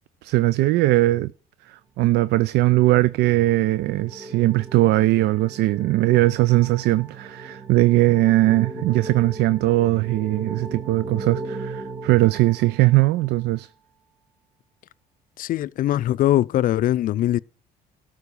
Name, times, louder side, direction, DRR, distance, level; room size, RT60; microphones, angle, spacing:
voice 1, 0.2-1.3 1.7-13.7, right 17 dB, 80° right, 0.4 m, -20 dB
sound 1, 2.5-13.3, right 3 dB, 15° right, 2.3 m, -38 dB
voice 2, 15.4-17.4, left 13 dB, 55° left, 0.4 m, -21 dB
13.0 x 4.6 x 7.0 m
cardioid pair, 110°, 17 cm